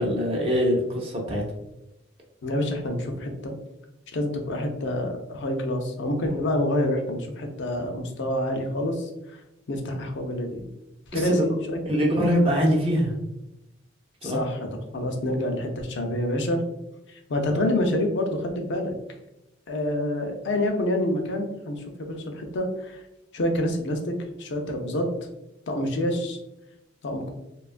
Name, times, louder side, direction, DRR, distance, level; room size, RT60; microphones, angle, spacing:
voice 1, 0.0-1.4 11.1-11.5 11.9-13.1 14.2-14.4, equal, 30° right, -1 dB, 0.5 m, -23 dB
voice 2, 2.4-3.5 4.1-9.4 9.7-10.7 11.1-11.8 14.2-14.7 14.9-16.6 17.1-18.9 19.7-23.0 23.3-25.1 25.7-26.4 27.0-27.3, left 1 dB, 60° left, 4 dB, 0.5 m, -27 dB
2.8 x 2.3 x 2.4 m, 0.90 s
head